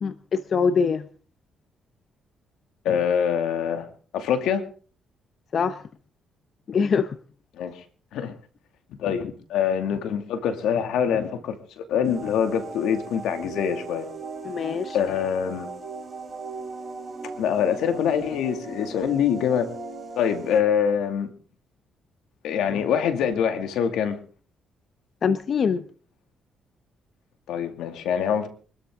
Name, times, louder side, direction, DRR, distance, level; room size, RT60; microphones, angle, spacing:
voice 1, 0.0-1.0 5.5-5.8 6.7-7.2 14.4-15.0 25.2-25.8, left 6 dB, 50° left, 11 dB, 0.9 m, -23 dB
voice 2, 2.8-3.9 4.1-4.6 7.6-7.8 8.1-8.3 9.0-14.1 14.9-15.7 17.4-19.7 20.2-21.3 22.4-24.2 27.5-28.5, left 8 dB, 85° left, 7 dB, 2.3 m, -24 dB
sound 1, 12.0-20.6, right 4 dB, 30° right, 3.6 m, -38 dB
24.5 x 13.0 x 3.8 m, 0.41 s
cardioid pair, 90°, 0 cm